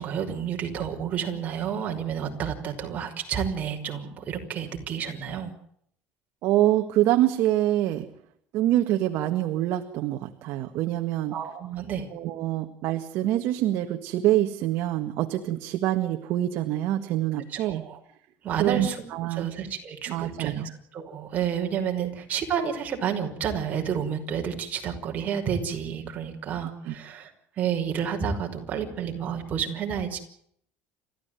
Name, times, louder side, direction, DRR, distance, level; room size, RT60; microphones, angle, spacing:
voice 1, 0.0-5.5 11.3-12.1 17.5-18.0 18.4-19.0 19.3-27.3 27.6-30.2, right 8 dB, 35° right, 2 dB, 5.6 m, -30 dB
voice 2, 6.4-8.1 8.5-11.4 12.1-17.8 18.6-19.5 20.1-20.7 22.0-22.1 26.9-27.0, right 14 dB, 65° right, 5 dB, 1.7 m, -25 dB
30.0 x 14.5 x 9.1 m, 0.70 s
cardioid pair, 135°, 4 cm